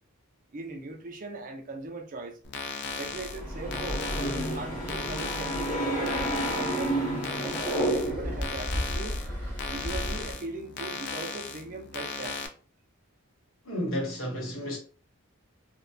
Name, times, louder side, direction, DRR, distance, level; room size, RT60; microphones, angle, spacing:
voice 1, 0.5-2.4 2.9-7.0 7.4-9.2 9.7-12.4, right 2 dB, 40° right, 0.5 m, -39 dB
sound 1, 2.4-12.5, left 5 dB, 55° left, 0.4 m, -37 dB
sound 2, 2.9-10.3, equal, 10° left, 0.9 m, -38 dB
sound 3, 3.2-8.5, right 1 dB, 35° left, 0.9 m, -30 dB
voice 2, 13.6-14.8, equal, 70° left, 0.9 m, -32 dB
2.6 x 2.1 x 2.2 m
head